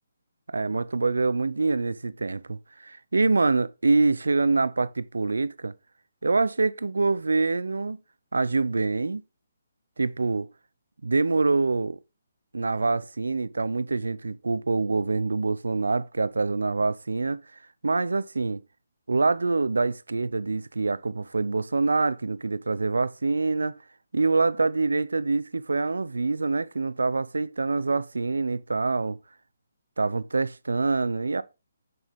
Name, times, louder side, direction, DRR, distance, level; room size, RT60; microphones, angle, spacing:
voice 1, 0.5-5.7 6.2-8.0 8.3-9.2 10.0-10.5 11.0-12.0 12.5-17.4 17.8-18.6 19.1-23.8 24.1-29.2 30.0-31.4, right 3 dB, 85° right, 0.5 m, -25 dB
6.2 x 6.1 x 3.6 m
hypercardioid pair, 150°, 0 cm